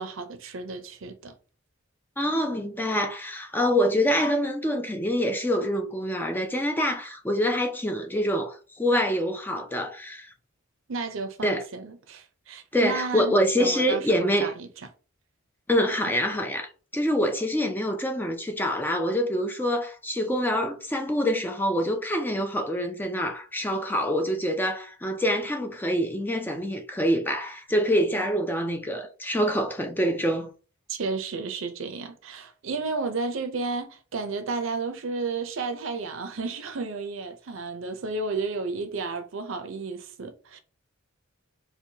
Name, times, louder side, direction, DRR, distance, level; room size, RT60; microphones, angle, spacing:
voice 1, 0.0-1.3 10.9-13.3 13.6-14.7 30.9-40.6, right 4 dB, 65° right, 0.6 m, -32 dB
voice 2, 2.2-10.3 11.4-11.6 12.7-14.5 15.7-30.5, equal, 10° left, 0.4 m, -26 dB
4.5 x 2.2 x 2.7 m
head